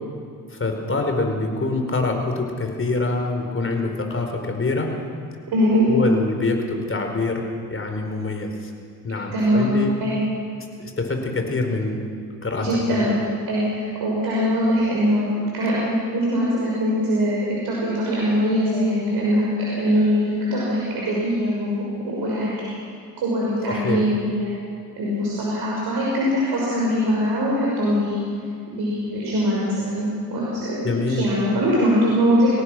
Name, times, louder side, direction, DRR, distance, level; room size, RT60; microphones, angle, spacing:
voice 1, 0.5-4.9 5.9-8.7 9.0-9.9 10.8-12.0 12.4-13.1 23.7-24.0 30.8-31.2, left 3 dB, 30° left, 4 dB, 4.6 m, -25 dB
voice 2, 5.5-5.9 9.3-10.2 12.6-13.1 13.5-15.8 16.1-22.7 23.2-24.5 25.0-28.2 28.7-32.6, equal, 60° right, -5 dB, 6.4 m, -22 dB
24.0 x 18.0 x 6.2 m, 2.4 s
hypercardioid pair, 55°, 43 cm